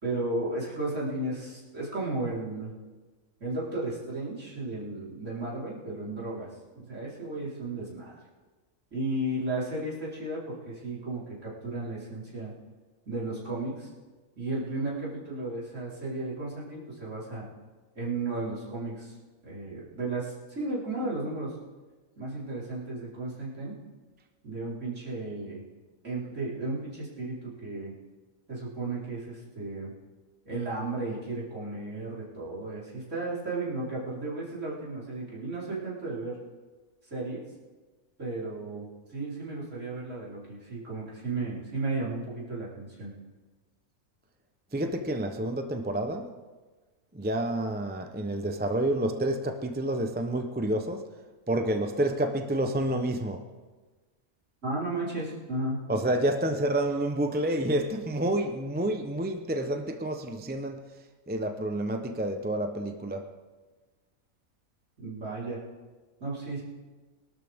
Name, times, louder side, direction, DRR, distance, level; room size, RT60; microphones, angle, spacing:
voice 1, 0.0-2.7 3.4-6.5 6.7-8.1 8.9-12.5 13.1-13.9 14.4-17.4 17.9-19.1 19.4-21.6 22.2-23.7 24.4-25.6 26.0-27.9 28.5-29.9 30.4-36.4 37.0-37.4 38.2-43.1 54.6-55.8 65.0-65.6 66.2-66.6, right 2 dB, 60° right, 4.7 m, -34 dB
voice 2, 44.7-46.3 47.1-51.1 51.5-53.4 55.9-60.9 61.3-63.3, right 1 dB, 10° right, 0.6 m, -29 dB
22.5 x 12.5 x 3.6 m
omnidirectional pair, 1.5 m